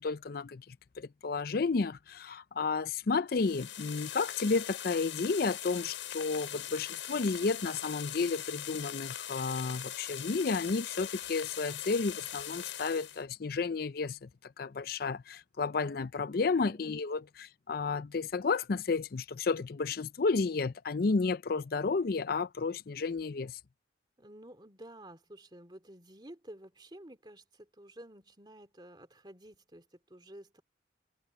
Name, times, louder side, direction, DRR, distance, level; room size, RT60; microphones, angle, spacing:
voice 1, 0.0-23.6, left 4 dB, 50° left, 0.5 m, -32 dB
sound 1, 3.3-13.2, left 11 dB, 85° left, 6.8 m, -41 dB
voice 2, 16.3-17.0 24.2-30.6, right 1 dB, 25° right, 2.9 m, -52 dB
head